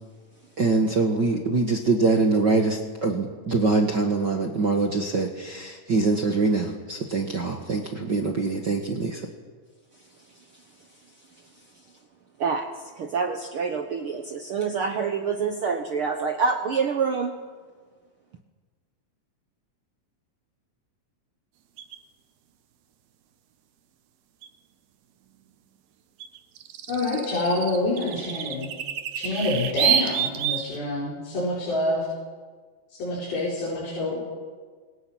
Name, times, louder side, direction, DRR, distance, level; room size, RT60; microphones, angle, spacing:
voice 1, 0.6-9.2, right 3 dB, 50° right, 3 dB, 1.3 m, -24 dB
voice 2, 10.2-10.9 11.3-11.6 12.4-17.4, right 5 dB, 70° right, 5 dB, 1.2 m, -27 dB
sound 1, 21.8-22.0 24.4-24.5 26.2-30.8, right 10 dB, 90° right, 3.2 m, -28 dB
voice 3, 26.9-28.7 29.1-32.0 32.9-34.2, left 2 dB, 85° left, -6 dB, 7.0 m, -27 dB
30.0 x 25.0 x 6.1 m, 1.5 s
omnidirectional pair, 4.2 m